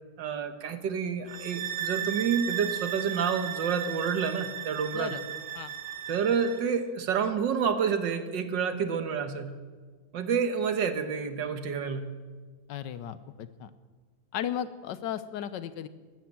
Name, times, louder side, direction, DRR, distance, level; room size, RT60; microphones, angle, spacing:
voice 1, 0.2-5.2 6.1-9.5 10.1-12.1, right 6 dB, 85° right, 8 dB, 1.9 m, -29 dB
sound 1, 1.3-6.7, right 10 dB, 65° right, 1.7 m, -36 dB
voice 2, 4.9-5.2 5.5-5.7 12.7-13.7 14.3-15.9, left 10 dB, 80° left, 13 dB, 1.4 m, -35 dB
13.0 x 12.5 x 7.6 m, 1.4 s
omnidirectional pair, 1.9 m